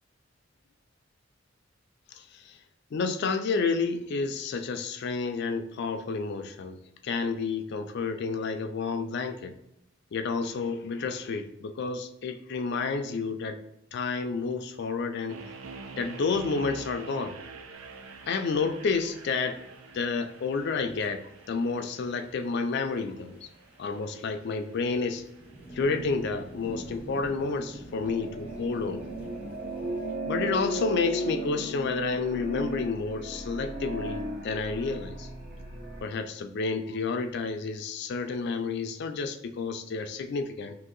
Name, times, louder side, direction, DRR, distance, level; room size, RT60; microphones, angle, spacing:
voice 1, 2.1-2.6 2.9-9.6 10.1-13.6 13.9-15.4 16.0-17.4 18.3-19.6 19.9-23.5 23.8-25.2 25.7-29.0 30.3-35.3 36.0-40.8, left 4 dB, 60° left, 7 dB, 0.4 m, -30 dB
sound 1, 15.3-26.3, right 4 dB, 90° right, 0.4 m, -47 dB
sound 2, 17.8-30.1, right 1 dB, 5° right, 0.9 m, -48 dB
sound 3, 28.0-36.0, right 1 dB, 50° right, 0.8 m, -35 dB
2.8 x 2.7 x 3.7 m, 0.82 s
head